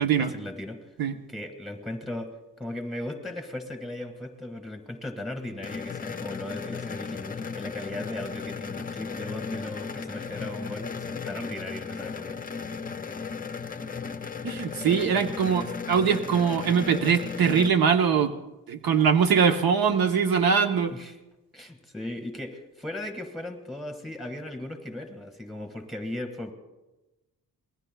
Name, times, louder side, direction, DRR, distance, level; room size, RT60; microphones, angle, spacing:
voice 1, 0.0-0.9 1.3-2.3 2.6-12.5 20.9-21.2 21.5-26.5, left 1 dB, ahead, 5 dB, 1.8 m, -37 dB
sound 1, 5.6-17.7, left 5 dB, 25° left, 0.5 m, -36 dB
voice 2, 14.4-18.3 18.7-20.9, right 6 dB, 75° right, 6 dB, 1.0 m, -22 dB
26.0 x 20.0 x 2.3 m, 1.0 s
wide cardioid pair, 125°, 36 cm